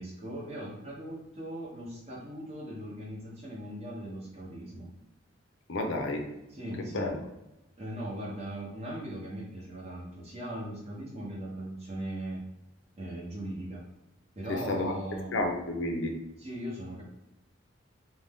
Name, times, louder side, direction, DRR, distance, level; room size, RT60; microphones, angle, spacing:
voice 1, 0.0-4.9 6.5-7.2 7.8-12.4 13.0-13.8 14.4-15.4 16.4-17.0, right 1 dB, 30° right, -4 dB, 0.8 m, -39 dB
voice 2, 5.7-6.2 6.9-7.2 14.5-14.9 15.3-16.1, left 2 dB, 70° left, 3 dB, 0.5 m, -31 dB
2.5 x 2.2 x 3.4 m, 0.92 s
head